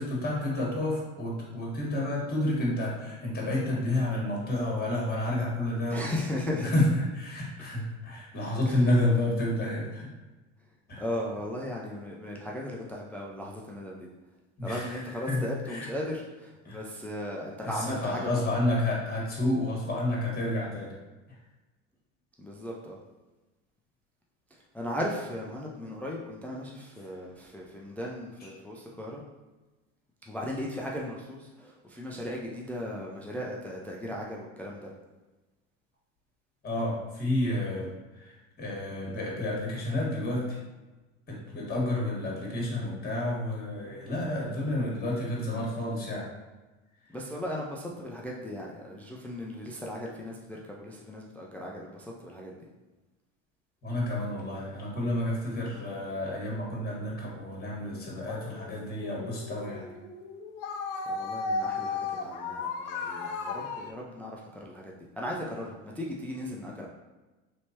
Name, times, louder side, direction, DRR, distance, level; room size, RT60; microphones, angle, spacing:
voice 1, 0.0-6.1 6.5-10.1 10.9-11.0 14.6-15.9 16.6-16.8 17.6-20.9 36.6-40.6 41.3-46.2 53.8-59.8, left 1 dB, 25° left, -3 dB, 1.5 m, -30 dB
voice 2, 5.9-6.7 8.7-8.8 11.0-14.1 14.6-18.5 22.4-23.0 24.7-29.2 30.3-34.9 47.1-52.6 61.1-66.9, left 1 dB, 5° left, -2 dB, 0.3 m, -37 dB
sound 1, 58.2-63.9, left 4 dB, 55° left, 0.5 m, -35 dB
3.3 x 2.9 x 2.8 m, 1.2 s
hypercardioid pair, 80°, 40 cm